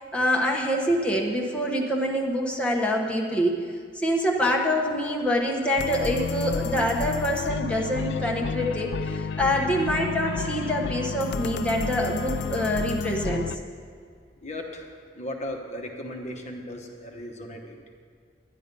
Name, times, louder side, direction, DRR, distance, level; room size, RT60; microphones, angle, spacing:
voice 1, 0.1-3.6 3.9-13.5, equal, 5° left, -2 dB, 1.0 m, -25 dB
sound 1, 5.8-13.6, left 5 dB, 70° left, 0.4 m, -31 dB
voice 2, 14.4-17.8, left 1 dB, 40° left, 3 dB, 1.0 m, -36 dB
11.0 x 10.5 x 5.3 m, 2.1 s
head